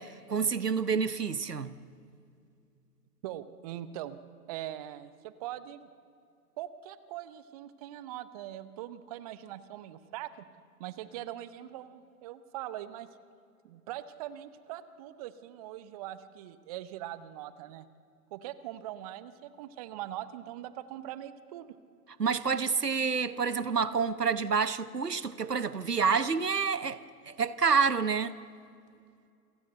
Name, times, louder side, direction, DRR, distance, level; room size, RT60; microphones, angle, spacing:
voice 1, 0.0-1.7 22.2-27.0 27.2-28.3, right 5 dB, 85° right, 1.1 m, -28 dB
voice 2, 3.2-4.2 4.5-5.9 6.6-10.4 10.8-13.1 13.6-17.9 18.3-21.7, right 13 dB, 25° right, 0.8 m, -42 dB
28.5 x 17.0 x 8.0 m
figure-of-eight pair, 120°, 46 cm